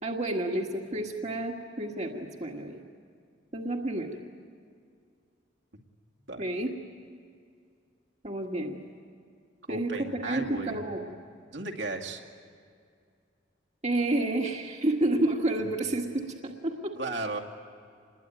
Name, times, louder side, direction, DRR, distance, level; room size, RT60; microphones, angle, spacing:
voice 1, 0.0-2.8 3.5-4.2 6.4-6.7 8.2-8.8 9.7-11.2 13.8-16.9, right 1 dB, 35° right, 1 dB, 1.7 m, -30 dB
voice 2, 9.7-10.8 11.5-12.2 16.9-17.4, right 2 dB, 65° right, 2 dB, 2.3 m, -35 dB
27.0 x 21.5 x 9.3 m, 2.3 s
head